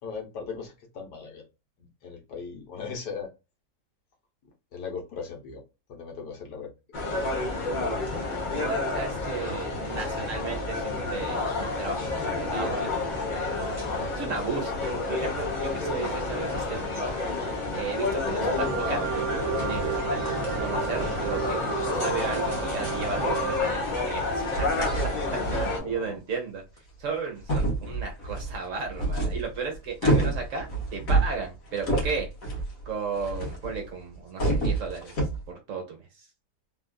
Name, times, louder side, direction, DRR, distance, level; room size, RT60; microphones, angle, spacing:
voice 1, 0.0-1.4 1.8-3.3 4.7-5.6 5.9-6.7 18.1-18.2 25.7-26.2, left 5 dB, 75° left, 1 dB, 1.6 m, -38 dB
sound 1, 6.9-25.8, left 3 dB, 35° left, 0.9 m, -29 dB
voice 2, 8.2-13.0 13.3-13.4 14.1-17.0 17.7-19.2 19.6-20.3 20.6-21.6 22.0-24.8 25.5-26.6 27.0-32.3 32.9-35.1 35.5-36.3, right 4 dB, 55° right, 2 dB, 1.1 m, -35 dB
sound 2, 18.6-23.7, right 9 dB, 80° right, 1.1 m, -32 dB
sound 3, 20.9-21.3 21.8-21.9 22.4-22.5 22.9-23.0 24.1-24.2 24.5-25.8 26.8-26.9 27.4-33.9 34.1-35.5, right 2 dB, 60° left, 1.6 m, -28 dB
3.5 x 2.5 x 2.2 m, 0.27 s
omnidirectional pair, 1.8 m